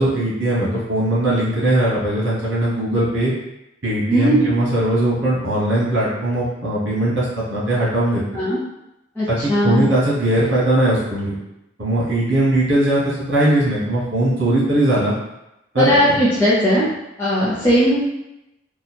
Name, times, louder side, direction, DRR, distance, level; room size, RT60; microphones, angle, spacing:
voice 1, 0.0-3.3 3.8-8.2 9.3-11.3 11.8-15.1 15.7-16.2, right 1 dB, 85° right, -7 dB, 1.2 m, -19 dB
voice 2, 4.1-4.4 8.3-8.6 9.2-9.8 15.8-16.9 17.2-18.0, equal, 10° left, -11 dB, 0.7 m, -17 dB
3.1 x 2.4 x 4.2 m, 0.90 s
head